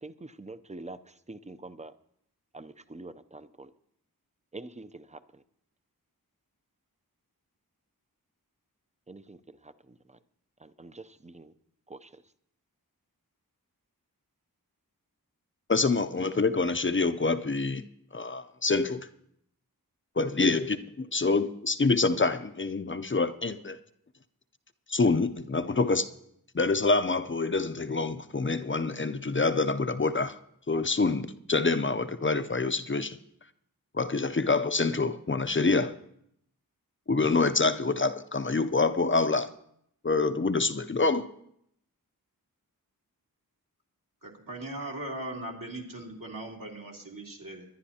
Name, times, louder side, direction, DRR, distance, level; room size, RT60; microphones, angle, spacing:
voice 1, 0.0-1.9 2.5-3.7 4.5-5.4 9.1-10.2 10.6-11.5 11.9-12.2, right 2 dB, 20° right, 0.5 m, -46 dB
voice 2, 15.7-17.8 18.1-19.1 20.2-23.8 24.9-26.1 26.5-30.3 30.7-33.2 33.9-36.0 37.1-39.5 40.0-41.3, left 3 dB, 35° left, 0.6 m, -26 dB
voice 3, 44.2-47.6, right 1 dB, 60° right, 2.5 m, -39 dB
21.5 x 10.5 x 2.8 m
wide cardioid pair, 50°, 37 cm